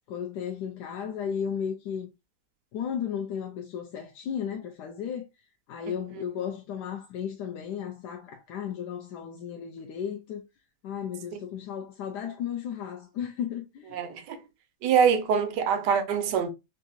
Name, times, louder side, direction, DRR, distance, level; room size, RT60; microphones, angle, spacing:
voice 1, 0.1-2.1 2.7-5.3 5.7-10.4 10.8-14.0, left 8 dB, 80° left, 1.1 m, -34 dB
voice 2, 13.9-14.4 14.8-16.5, right 7 dB, 85° right, 1.3 m, -24 dB
3.7 x 2.4 x 2.6 m
omnidirectional pair, 1.8 m